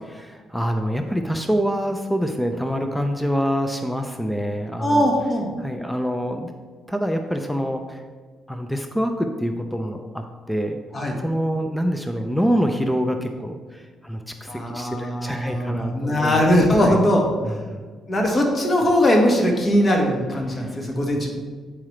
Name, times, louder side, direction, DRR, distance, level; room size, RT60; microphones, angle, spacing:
voice 1, 0.0-5.1 5.6-6.5 6.9-8.0 8.5-10.8 11.2-16.4 16.8-17.0 17.4-17.8 20.5-20.8, equal, 5° left, 5 dB, 0.5 m, -26 dB
voice 2, 4.8-5.5 10.9-11.1 14.5-17.2 18.1-21.3, equal, 30° left, 0 dB, 1.4 m, -20 dB
8.6 x 4.8 x 3.2 m, 1.5 s
cardioid pair, 90°, 0 cm